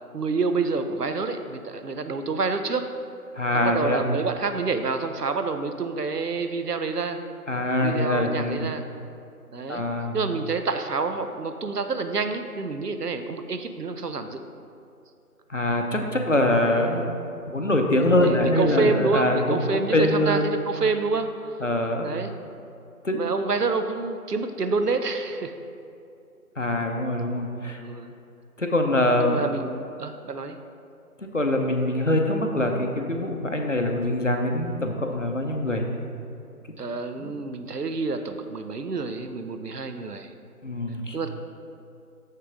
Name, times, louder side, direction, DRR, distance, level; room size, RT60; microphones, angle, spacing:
voice 1, 0.1-2.9 3.5-7.2 7.8-8.9 9.5-9.8 10.1-14.4 18.2-21.6 22.0-22.3 23.1-25.5 27.8-28.1 29.2-30.6 36.8-40.3 41.1-41.3, right 4 dB, 75° right, 8 dB, 0.7 m, -28 dB
voice 2, 3.4-4.0 7.5-8.7 9.7-10.1 15.5-17.1 17.5-20.6 21.6-22.1 23.0-23.2 26.6-27.8 28.6-29.4 31.3-35.9 37.2-37.3 40.6-41.2, left 1 dB, 50° left, 3 dB, 0.7 m, -24 dB
6.6 x 6.5 x 3.6 m, 2.6 s
figure-of-eight pair, 170°, 47 cm